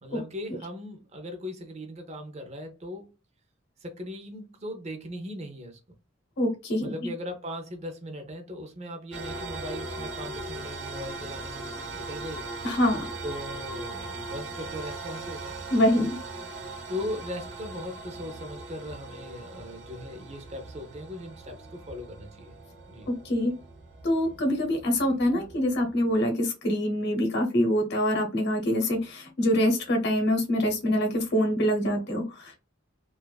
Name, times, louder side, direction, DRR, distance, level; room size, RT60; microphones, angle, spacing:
voice 1, 0.0-3.1 3.8-5.8 6.8-12.5 13.2-15.6 16.9-22.6 22.9-23.1, left 1 dB, 35° right, 0.6 m, -39 dB
voice 2, 6.4-6.9 12.6-13.0 15.7-16.2 23.1-23.5 24.0-32.6, equal, 60° left, 0.8 m, -25 dB
sound 1, 9.1-26.2, right 2 dB, 70° right, 1.0 m, -40 dB
2.5 x 2.3 x 2.2 m
head